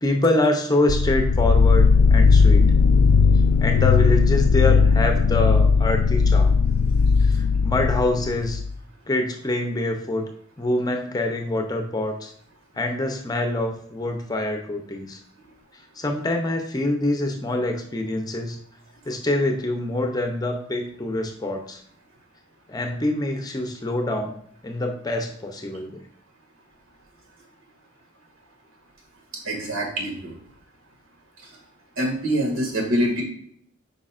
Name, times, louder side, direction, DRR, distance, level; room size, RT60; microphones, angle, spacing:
voice 1, 0.0-2.6 3.6-6.5 7.2-8.6 9.1-10.2 10.6-12.3 12.8-15.2 16.0-18.6 19.1-21.8 22.7-26.0, left 1 dB, 20° left, 4 dB, 0.6 m, -25 dB
sound 1, 0.9-8.7, left 5 dB, 90° left, 0.3 m, -17 dB
voice 2, 29.5-30.3 32.0-33.2, equal, 85° right, 0 dB, 2.0 m, -24 dB
8.4 x 5.5 x 2.5 m, 0.64 s
head